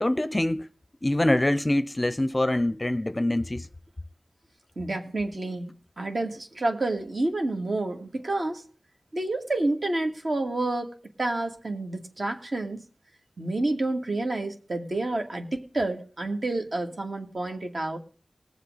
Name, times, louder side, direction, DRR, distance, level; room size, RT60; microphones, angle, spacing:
voice 1, 0.0-0.7 1.0-3.7, left 1 dB, 25° left, 0.6 m, -24 dB
voice 2, 4.8-8.6 9.1-12.8 13.4-18.0, right 2 dB, 60° right, 2.2 m, -29 dB
20.0 x 7.5 x 4.1 m
wide cardioid pair, 65°, 0 cm